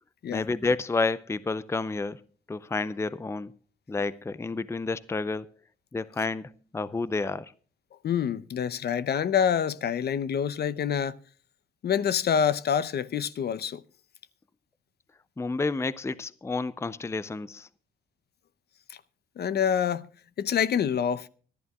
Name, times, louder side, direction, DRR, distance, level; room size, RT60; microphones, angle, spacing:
voice 1, 0.3-2.2 2.5-3.5 3.9-5.5 5.9-7.5 15.4-17.7, left 3 dB, 15° left, 0.6 m, -30 dB
voice 2, 8.0-11.2 11.8-13.8 18.9-19.0 19.4-20.1 20.4-21.3, left 8 dB, 55° left, 0.8 m, -26 dB
25.0 x 11.5 x 2.4 m
cardioid pair, 90°, 20 cm